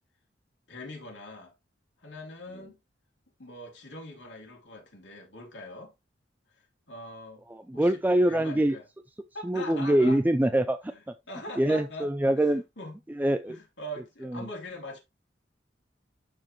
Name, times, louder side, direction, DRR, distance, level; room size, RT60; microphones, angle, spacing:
voice 1, 0.7-1.5 2.0-2.8 3.4-5.9 6.9-7.4 7.7-7.9 8.3-8.8 9.3-10.2 10.9-11.0 11.3-12.1 12.4-12.9 13.5-15.0, left 1 dB, 80° left, 2.8 m, -42 dB
voice 2, 7.5-8.8 9.4-11.1 11.6-12.6 13.1-13.6 14.2-14.5, right 1 dB, 10° right, 0.4 m, -25 dB
12.0 x 4.5 x 3.0 m
head